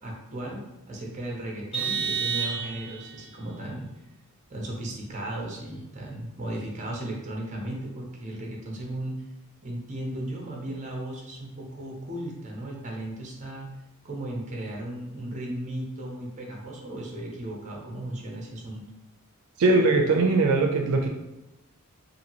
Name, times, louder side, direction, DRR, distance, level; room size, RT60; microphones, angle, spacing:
voice 1, 0.0-3.9 4.5-9.2 9.6-13.7 14.0-18.8, right 1 dB, 30° right, -1 dB, 0.6 m, -36 dB
Vehicle horn car horn honking, 1.7-3.1, right 6 dB, 25° left, 0.7 m, -29 dB
voice 2, 19.6-21.1, right 3 dB, 75° right, 2 dB, 0.4 m, -21 dB
2.8 x 2.6 x 2.8 m, 0.94 s
head